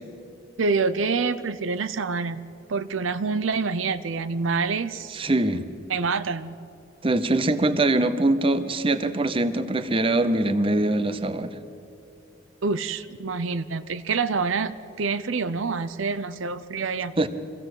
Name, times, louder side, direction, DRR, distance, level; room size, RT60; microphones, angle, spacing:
voice 1, 0.6-2.4 2.7-5.2 5.5-5.6 5.9-6.6 12.6-17.1, right 4 dB, 85° right, 13 dB, 0.7 m, -27 dB
voice 2, 5.1-5.7 7.0-11.5 17.2-17.3, right 2 dB, 25° right, 10 dB, 0.8 m, -23 dB
24.0 x 16.0 x 7.9 m, 2.6 s
head